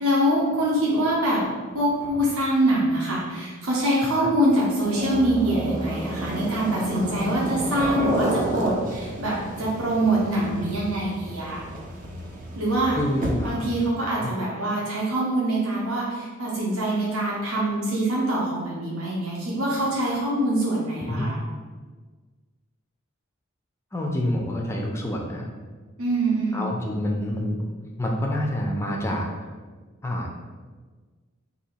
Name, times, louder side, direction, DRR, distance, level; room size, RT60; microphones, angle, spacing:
voice 1, 0.0-1.4 1.7-11.7 12.6-13.0 13.4-21.3 26.0-26.7, right 1 dB, 85° right, -5 dB, 0.8 m, -24 dB
sound 1, 4.6-13.7, right 1 dB, 40° right, 0.5 m, -30 dB
voice 2, 13.0-13.7 14.0-14.3 21.1-21.3 23.9-25.5 26.5-27.6 28.0-29.3 30.0-30.4, left 1 dB, 10° left, 0 dB, 0.4 m, -27 dB
2.7 x 2.7 x 4.2 m, 1.4 s
head